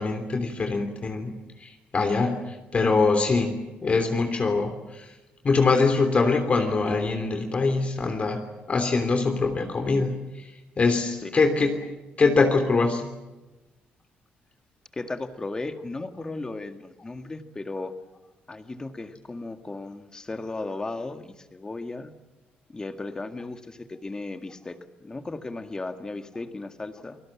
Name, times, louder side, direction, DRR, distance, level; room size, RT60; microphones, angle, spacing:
voice 1, 0.0-1.3 1.6-2.4 2.7-3.5 3.8-4.7 5.4-8.4 8.7-10.1 10.8-11.9 12.2-13.1, left 4 dB, 35° left, 5 dB, 3.2 m, -23 dB
voice 2, 14.9-17.9 18.5-22.1 22.7-27.2, left 2 dB, 20° left, 8 dB, 2.0 m, -36 dB
29.5 x 20.0 x 7.4 m, 1.1 s
cardioid pair, 115°, 4 cm